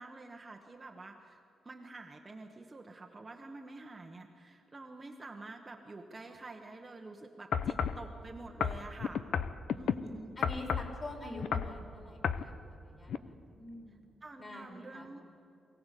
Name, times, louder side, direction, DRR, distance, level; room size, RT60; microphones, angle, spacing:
voice 1, 0.0-9.2 9.7-10.4 14.2-15.2, right 2 dB, 20° right, 3 dB, 1.1 m, -48 dB
sound 1, 7.5-8.0 8.6-10.0 10.4-10.9 11.4-11.8 12.2-12.5 13.1-13.2, left 7 dB, 65° left, 0.7 m, -32 dB
voice 2, 9.7-10.1 10.4-14.0 14.4-15.1, left 1 dB, 25° left, 2 dB, 3.9 m, -46 dB
23.0 x 16.5 x 8.3 m, 2.8 s
wide cardioid pair, 155°, 0 cm